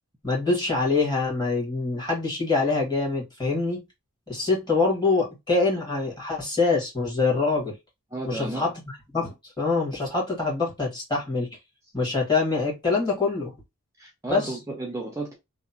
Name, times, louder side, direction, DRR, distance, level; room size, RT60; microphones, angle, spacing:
voice 1, 0.2-3.8 4.3-7.7 8.3-8.7 9.1-11.5 11.9-13.5 14.3-14.5, left 3 dB, 20° left, 1.3 m, -25 dB
voice 2, 8.1-8.7 14.0-15.4, right 2 dB, 15° right, 0.5 m, -33 dB
2.8 x 2.1 x 2.7 m
head